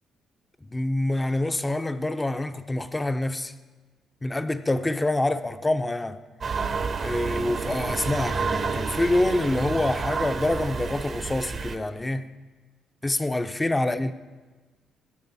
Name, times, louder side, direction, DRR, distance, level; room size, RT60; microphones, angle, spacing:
voice 1, 0.7-3.5 4.2-6.2 7.0-12.3 13.0-14.1, left 2 dB, 15° left, 0.6 m, -26 dB
sound 1, 6.4-11.8, right 5 dB, 45° right, 0.8 m, -29 dB
16.0 x 9.5 x 4.1 m
cardioid pair, 90°, 0 cm